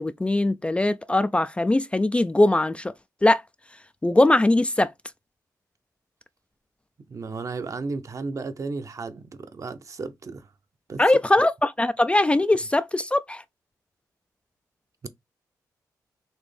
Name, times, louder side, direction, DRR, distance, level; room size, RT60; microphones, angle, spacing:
voice 1, 0.0-2.9 3.2-3.4 4.0-4.9 11.0-13.4, left 2 dB, 15° left, 0.4 m, -21 dB
voice 2, 7.1-9.2 9.5-10.5 10.9-11.0 15.0-15.1, right 4 dB, 50° right, 0.8 m, -33 dB
4.4 x 3.2 x 3.3 m
cardioid pair, 65°, 7 cm